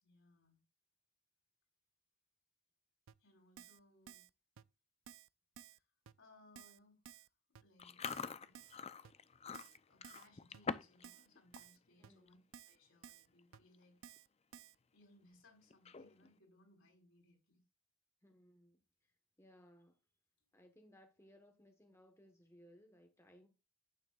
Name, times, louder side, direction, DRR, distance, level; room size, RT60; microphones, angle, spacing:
voice 1, 0.0-0.6 3.2-4.2 5.6-5.9 6.2-7.3 7.6-8.6 9.6-12.4 12.7-14.0 14.9-17.6 20.4-20.5, left 2 dB, 60° left, 4.4 m, -67 dB
Keyboard (musical), 3.1-3.2 3.6-3.8 4.1-4.3 4.6-4.7 5.1-5.3 5.6-5.8 6.1-6.2 6.6-6.8 7.1-7.3 7.6-7.7 8.1-8.3 8.6-8.8 9.0-9.1 9.5-9.8 10.0-10.3 10.5-10.6 11.0-11.3 11.5-11.8 12.0-12.1 12.5-12.8 13.0-13.3 13.5-13.6 14.0-14.3 14.5-14.8, right 8 dB, 70° right, 0.5 m, -56 dB
Chewing mastication, 7.8-11.1 11.4-11.7 12.1-12.3 13.1-13.2 13.4-13.8 14.2-14.3 15.7-16.3, left 5 dB, 30° left, 0.5 m, -45 dB
voice 2, 12.0-12.5 18.2-20.0 20.5-23.5, equal, 15° left, 1.2 m, -64 dB
11.0 x 8.9 x 2.4 m
head